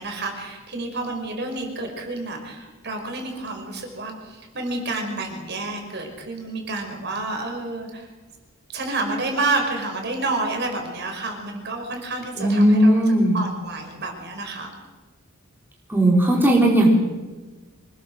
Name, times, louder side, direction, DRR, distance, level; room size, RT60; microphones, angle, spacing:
voice 1, 0.0-8.1 8.7-14.7, right 2 dB, 50° right, 3 dB, 5.5 m, -29 dB
voice 2, 12.4-13.4 15.9-16.9, right 1 dB, 10° right, -2 dB, 3.9 m, -17 dB
25.5 x 21.5 x 6.5 m, 1.2 s
head